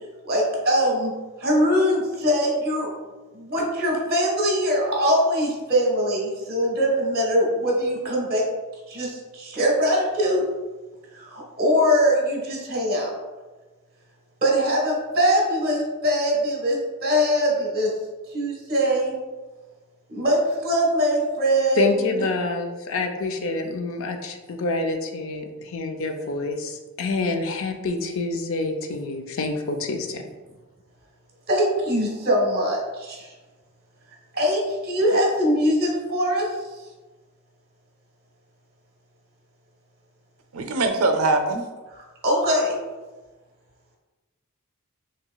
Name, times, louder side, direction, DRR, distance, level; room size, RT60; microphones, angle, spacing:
voice 1, 0.2-1.1 1.4-2.9 3.3-8.4 8.9-10.5 11.1-13.1 14.4-17.9 18.3-19.1 20.1-21.9 31.5-33.3 34.3-36.5 42.2-42.8, equal, 45° right, -1 dB, 1.3 m, -22 dB
voice 2, 21.7-30.2, left 3 dB, 65° left, 5 dB, 0.5 m, -27 dB
voice 3, 40.5-41.7, right 2 dB, 70° right, 6 dB, 0.5 m, -22 dB
5.9 x 2.9 x 2.3 m, 1.2 s
head